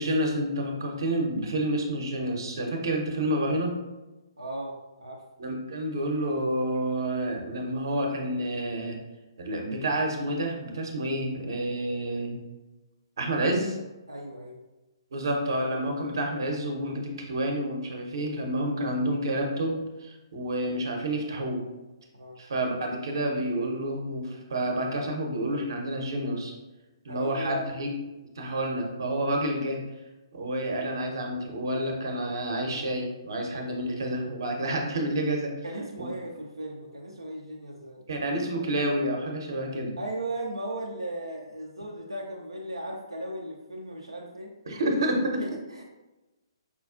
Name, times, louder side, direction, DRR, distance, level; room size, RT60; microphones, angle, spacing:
voice 1, 0.0-3.8 5.4-9.0 9.4-12.4 13.2-13.8 15.1-21.7 22.4-26.5 27.0-27.9 28.4-29.8 30.3-35.5 36.0-36.1 38.1-40.0 44.7-45.4, right 1 dB, 55° right, 1 dB, 0.8 m, -29 dB
voice 2, 4.4-5.2 14.1-14.6 22.1-22.4 27.1-27.8 35.6-38.2 40.0-44.5 45.4-45.8, right 1 dB, 80° right, -1 dB, 0.4 m, -37 dB
5.0 x 2.3 x 2.4 m, 1.1 s
figure-of-eight pair, 130°, 3 cm